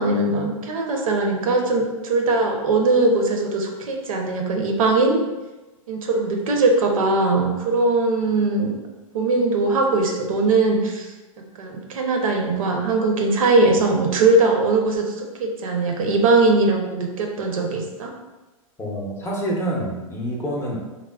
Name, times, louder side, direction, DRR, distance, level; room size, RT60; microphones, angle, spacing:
voice 1, 0.0-5.2 5.9-8.7 9.1-11.1 11.6-18.1, right 3 dB, 75° right, 2 dB, 0.6 m, -20 dB
voice 2, 18.8-20.8, right 1 dB, 15° left, -3 dB, 0.5 m, -27 dB
3.5 x 2.0 x 2.3 m, 1.1 s
hypercardioid pair, 120°, 18 cm